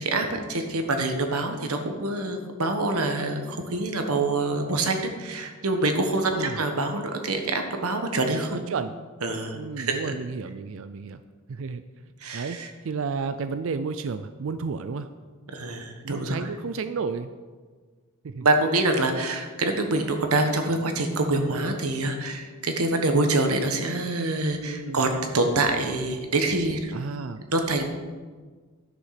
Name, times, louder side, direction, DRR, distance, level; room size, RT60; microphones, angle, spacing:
voice 1, 0.0-8.6 9.2-10.1 12.2-12.7 15.5-16.5 18.4-26.9 27.5-27.8, right 2 dB, 80° right, 5 dB, 1.3 m, -26 dB
voice 2, 6.3-6.6 8.5-8.9 9.5-11.2 11.5-11.8 12.3-15.1 16.0-17.3 18.2-18.5 24.7-25.1 26.9-27.4, right 5 dB, 60° right, 11 dB, 0.4 m, -32 dB
11.0 x 6.4 x 5.8 m, 1.5 s
head